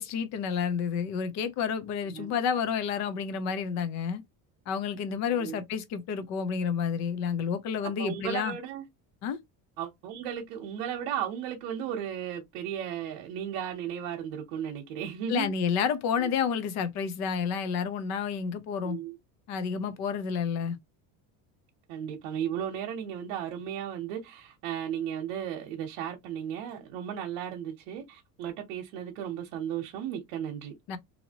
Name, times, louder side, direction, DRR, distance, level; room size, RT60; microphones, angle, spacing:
voice 1, 0.0-4.2 4.7-8.5 9.2-9.4 15.3-19.0 19.5-20.8 30.9-31.0, left 7 dB, 45° left, 0.5 m, -30 dB
voice 2, 7.8-8.8 9.8-15.5 16.2-16.3 18.8-19.2 21.9-30.7, right 9 dB, 85° right, 0.9 m, -35 dB
2.8 x 2.7 x 2.8 m
cardioid pair, 180°, 38 cm